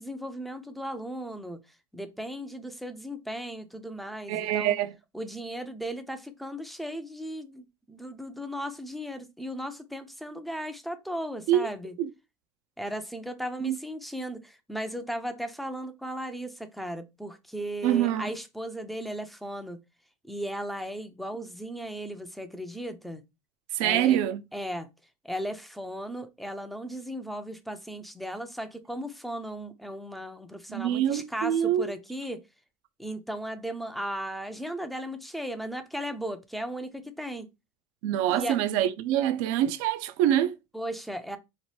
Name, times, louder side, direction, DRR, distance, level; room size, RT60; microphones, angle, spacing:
voice 1, 0.0-4.8 5.1-11.9 12.8-19.8 20.2-23.2 23.8-24.2 24.5-24.9 25.2-32.4 33.0-37.5 38.3-38.6 40.7-41.4, equal, ahead, 0.4 m, -36 dB
voice 2, 4.3-4.9 11.5-11.7 12.0-12.1 13.6-13.8 17.8-18.3 23.7-24.4 30.7-31.9 38.0-40.6, right 11 dB, 70° right, 0.5 m, -25 dB
3.0 x 2.0 x 3.2 m
supercardioid pair, 95°, 18 cm